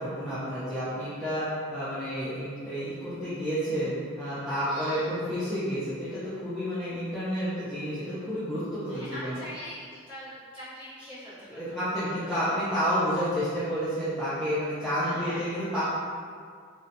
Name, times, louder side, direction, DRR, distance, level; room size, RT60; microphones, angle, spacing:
voice 1, 0.0-9.4 11.5-15.8, equal, ahead, -15 dB, 0.4 m, -30 dB
voice 2, 4.6-5.1 8.8-12.6 15.0-15.6, equal, 25° right, -14 dB, 1.1 m, -43 dB
2.7 x 2.1 x 2.5 m, 2.1 s
head